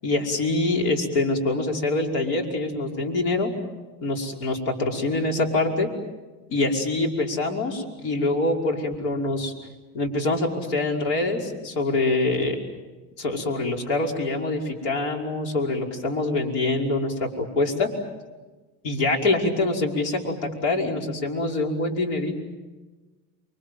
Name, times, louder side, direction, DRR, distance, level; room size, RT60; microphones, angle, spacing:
voice 1, 0.0-3.5 4.0-5.9 6.5-9.5 9.9-12.6 13.2-17.9 18.8-22.4, left 2 dB, 70° left, 1 dB, 5.6 m, -25 dB
29.0 x 24.0 x 7.7 m, 1.2 s
supercardioid pair, 110°, 47 cm